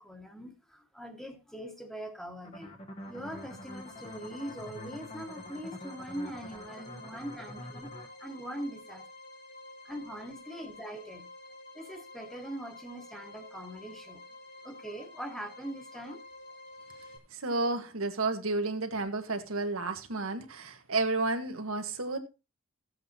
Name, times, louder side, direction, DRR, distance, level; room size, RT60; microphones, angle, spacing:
voice 1, 0.0-2.7 3.1-9.1 9.8-11.3 11.7-14.2 14.6-16.2, right 1 dB, ahead, 1.3 m, -42 dB
sound 1, 2.4-8.1, left 1 dB, 30° left, 1.0 m, -46 dB
sound 2, 3.0-17.2, left 2 dB, 50° left, 1.7 m, -50 dB
voice 2, 17.3-22.2, right 3 dB, 80° right, 1.4 m, -31 dB
15.0 x 7.9 x 2.7 m
head